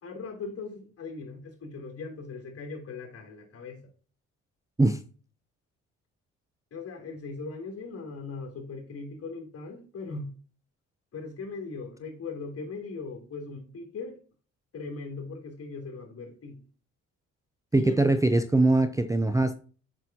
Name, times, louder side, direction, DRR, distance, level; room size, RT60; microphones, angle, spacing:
voice 1, 0.0-3.8 6.7-10.3 11.1-14.2 14.7-16.6 17.7-17.9, left 4 dB, 50° left, 3.3 m, -39 dB
voice 2, 17.7-19.6, right 2 dB, 10° right, 0.5 m, -22 dB
7.8 x 6.0 x 2.8 m
cardioid pair, 90°, 30 cm